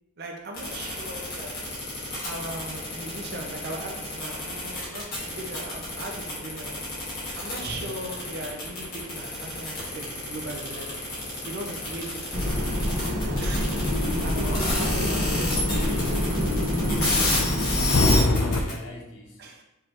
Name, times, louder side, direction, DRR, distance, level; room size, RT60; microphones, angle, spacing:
voice 1, 0.2-1.6 2.2-6.9 7.4-11.0 11.4-12.6 13.4-13.8 14.2-15.6 19.4-19.6, right 1 dB, 50° right, 2 dB, 0.5 m, -38 dB
sound 1, 0.5-18.7, left 2 dB, 45° left, 1.5 m, -30 dB
voice 2, 7.6-8.0 13.8-15.4 15.7-19.4, left 1 dB, 60° left, 0 dB, 0.9 m, -40 dB
sound 2, 12.3-18.2, left 1 dB, 65° right, 1.5 m, -26 dB
sound 3, 15.6-18.6, left 2 dB, 85° left, 0.5 m, -26 dB
4.9 x 3.2 x 2.9 m, 0.95 s
head